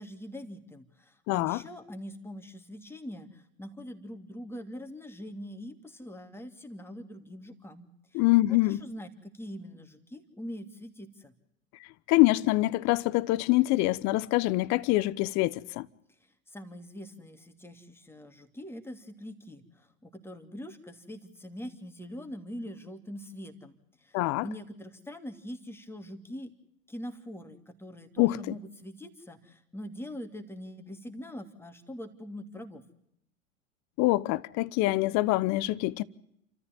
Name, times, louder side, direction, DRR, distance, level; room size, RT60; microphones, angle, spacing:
voice 1, 0.0-8.2 8.5-11.3 16.5-26.5 26.9-32.8, equal, 5° left, 2.8 m, -43 dB
voice 2, 1.3-1.6 8.1-8.8 12.1-15.9 24.1-24.5 28.2-28.5 34.0-36.0, left 19 dB, 40° left, 1.1 m, -25 dB
29.5 x 14.0 x 9.2 m
hypercardioid pair, 95°, 41 cm